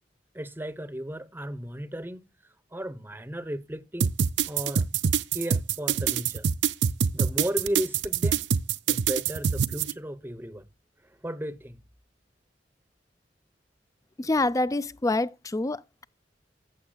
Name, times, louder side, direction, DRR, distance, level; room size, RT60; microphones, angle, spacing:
voice 1, 0.3-2.2 2.7-4.1 4.5-4.9 5.3-6.5 7.1-8.4 8.9-10.7 11.2-11.8, equal, 10° right, 0.8 m, -34 dB
sound 1, 4.0-9.9, right 7 dB, 80° right, 0.5 m, -24 dB
voice 2, 14.2-16.0, left 2 dB, 20° left, 0.4 m, -27 dB
15.0 x 6.9 x 2.2 m
head